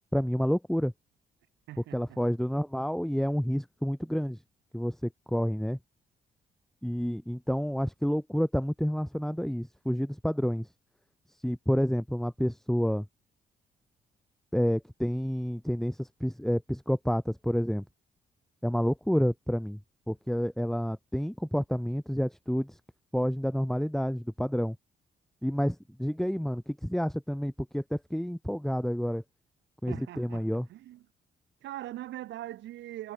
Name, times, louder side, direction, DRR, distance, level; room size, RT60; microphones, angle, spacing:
voice 1, 0.1-0.9 1.9-4.4 4.7-5.8 6.8-10.7 11.4-13.1 14.5-17.8 18.6-19.8 20.1-22.8 23.1-24.8 25.4-29.2 29.8-30.7, equal, ahead, 7.1 m, -29 dB
voice 2, 1.7-2.2 29.9-30.4 30.7-31.0 31.6-33.1, right 14 dB, 80° right, 6.0 m, -41 dB
supercardioid pair, 55°, 19 cm